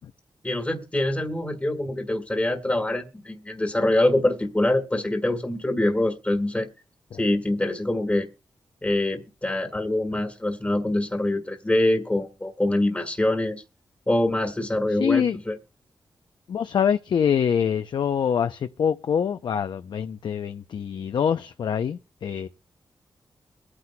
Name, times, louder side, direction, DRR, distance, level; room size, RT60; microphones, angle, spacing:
voice 1, 0.4-6.7 7.2-8.3 8.8-13.6 14.1-15.6, left 1 dB, 15° left, 1.4 m, -24 dB
voice 2, 14.9-15.4 16.5-22.5, left 7 dB, 75° left, 0.5 m, -25 dB
23.5 x 9.7 x 2.2 m
cardioid pair, 65°, 8 cm